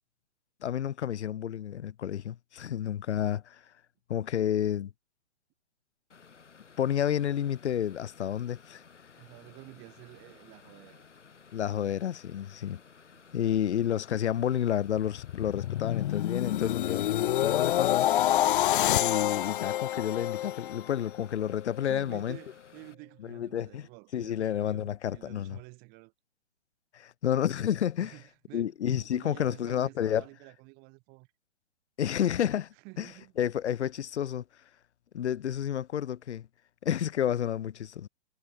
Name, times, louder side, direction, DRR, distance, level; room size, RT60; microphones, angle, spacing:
voice 1, 0.6-3.6 4.1-4.9 6.8-8.8 11.5-12.8 13.3-18.1 18.9-22.4 23.3-23.9 24.1-25.6 26.9-28.1 28.5-30.2 32.0-33.1 33.4-34.4 35.1-36.5 36.8-38.1, left 10 dB, 70° left, 0.9 m, -30 dB
sound 1, 6.1-22.9, left 5 dB, 90° left, 4.0 m, -56 dB
voice 2, 9.2-11.1 13.1-13.7 21.8-26.1 28.0-31.3 32.7-33.3, right 30 dB, 30° right, 2.0 m, -50 dB
sound 2, 15.1-21.2 21.7-21.9, left 13 dB, 50° left, 0.5 m, -28 dB
hypercardioid pair, 140°, 35 cm